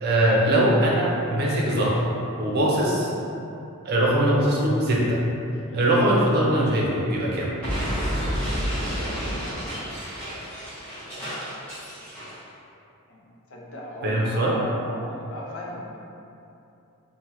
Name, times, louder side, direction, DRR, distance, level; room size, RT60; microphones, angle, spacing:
voice 1, 0.0-2.1 2.4-3.1 3.8-5.2 5.7-7.5 14.0-14.6, right 1 dB, 45° right, -4 dB, 0.5 m, -21 dB
Explosion, 7.6-12.4, equal, 5° left, 1.0 m, -30 dB
voice 2, 13.1-16.0, equal, 60° left, -4 dB, 0.5 m, -37 dB
3.4 x 2.1 x 2.8 m, 2.7 s
head